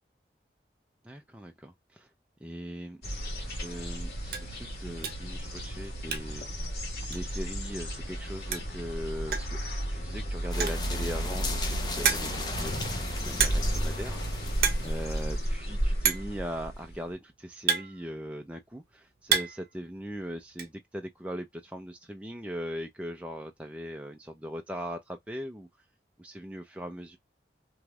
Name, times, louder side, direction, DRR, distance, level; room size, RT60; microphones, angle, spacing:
voice 1, 1.0-2.1 2.4-3.0 3.5-9.6 9.9-25.7 26.2-27.2, equal, 5° right, 0.4 m, -40 dB
sound 1, 3.0-17.1, right 1 dB, 60° left, 1.7 m, -33 dB
sound 2, 3.3-3.5 3.9-4.0 4.3-4.5 5.0-5.3 5.6-6.5 6.7-6.8 7.1-7.2 8.2-8.3 8.5-8.8 9.3-9.6 10.4-10.9 11.5-11.6 12.0-12.5 13.4-13.8 14.1-14.3 14.5-14.9 15.2-15.3 16.0-16.4 17.2-18.5 18.9-19.7 20.0-20.7, right 7 dB, 55° right, 0.8 m, -29 dB
sound 3, 10.5-15.4, left 3 dB, 25° left, 0.7 m, -37 dB
3.2 x 3.1 x 2.2 m
head